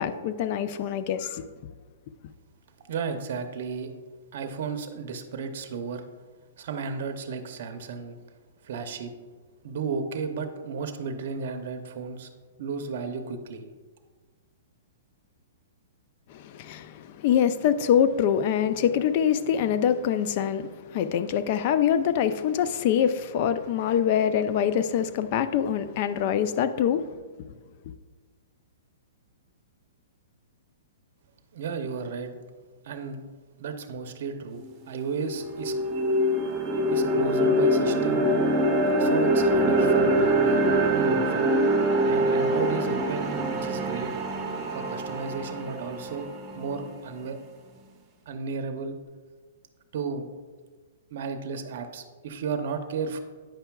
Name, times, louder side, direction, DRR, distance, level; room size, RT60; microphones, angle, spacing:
voice 1, 0.0-1.4 16.3-27.1, left 9 dB, 45° left, 0.4 m, -24 dB
voice 2, 2.9-3.9 4.3-6.0 6.6-8.2 8.6-9.1 9.6-12.3 12.6-13.7 31.5-32.4 32.8-33.2 33.6-35.7 36.9-38.2 39.0-40.6 40.9-41.4 42.0-44.1 44.7-46.3 46.5-47.4 48.3-49.0 49.9-50.3 51.1-53.2, right 5 dB, 60° right, 0.6 m, -33 dB
sound 1, 34.6-34.7 35.1-47.2, right 1 dB, 25° right, 0.8 m, -24 dB
8.8 x 5.6 x 2.3 m
hypercardioid pair, 130°, 0 cm